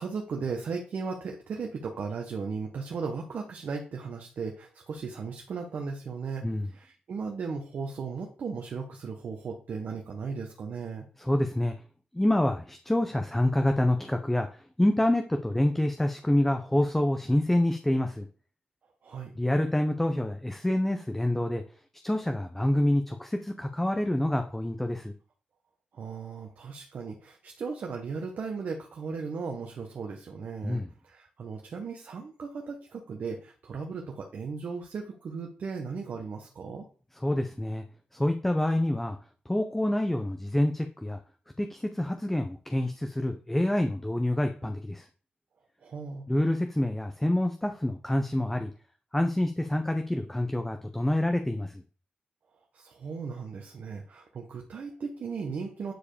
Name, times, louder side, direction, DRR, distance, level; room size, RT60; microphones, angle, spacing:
voice 1, 0.0-11.0 19.0-19.3 25.9-36.8 45.8-46.3 52.7-55.9, right 5 dB, 60° right, 2 dB, 1.5 m, -36 dB
voice 2, 11.2-11.7 12.1-14.5 14.8-18.3 19.4-21.6 22.0-25.1 30.6-30.9 37.2-37.8 38.1-39.2 39.5-41.2 41.6-45.1 46.3-48.7 49.1-51.8, left 1 dB, 10° left, 5 dB, 0.8 m, -27 dB
9.9 x 4.7 x 5.0 m, 0.40 s
wide cardioid pair, 130°, 3 cm